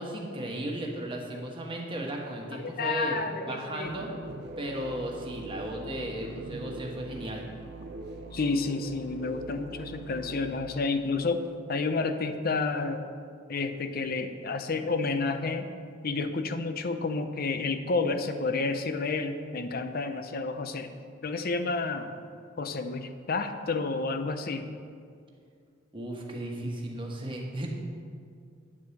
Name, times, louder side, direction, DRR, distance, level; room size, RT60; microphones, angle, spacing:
voice 1, 0.0-3.2 3.5-4.1 4.6-7.4 25.9-27.7, right 1 dB, 25° right, 0 dB, 1.4 m, -35 dB
voice 2, 2.8-3.9 8.3-11.4 11.7-13.1 13.5-15.7 16.0-20.9 21.2-22.1 22.6-24.7, left 3 dB, 50° left, 8 dB, 0.6 m, -30 dB
sound 1, 3.8-10.5, right 2 dB, 60° right, 0.7 m, -42 dB
9.5 x 4.9 x 7.1 m, 2.3 s
head